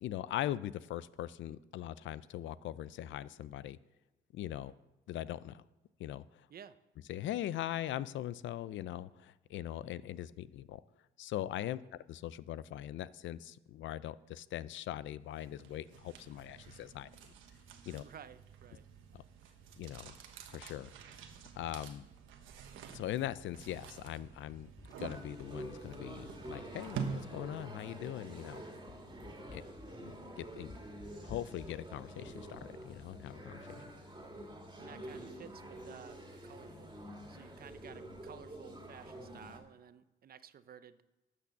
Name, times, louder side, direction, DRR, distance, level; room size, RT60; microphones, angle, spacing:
voice 1, 0.0-3.8 4.3-4.7 5.1-5.6 6.0-6.5 7.1-10.8 11.2-11.8 12.1-17.1 17.9-18.0 19.1-19.2 19.8-20.2 20.5-20.9 21.5-22.1 22.9-24.7 25.0-28.6 29.5-29.6 30.0-30.7 31.2-33.8, left 12 dB, 70° left, 18 dB, 0.5 m, -41 dB
sound 1, 15.3-27.7, right 6 dB, 85° right, 1.2 m, -48 dB
voice 2, 17.9-18.8 29.5-29.8 34.8-36.9 37.3-41.0, right 8 dB, 50° right, 14 dB, 0.7 m, -54 dB
sound 2, 22.8-24.0 24.3-27.3 27.8-27.9 28.3-28.5 28.9-34.9 35.2-35.3 35.5-35.6 36.1-36.2 36.6-36.8 37.0-37.4 37.7-38.7, left 3 dB, 20° left, 0.7 m, -58 dB
sound 3, 25.0-39.6, right 1 dB, 20° right, 2.3 m, -48 dB
12.5 x 6.1 x 7.1 m, 1.1 s
cardioid pair, 90°, 20 cm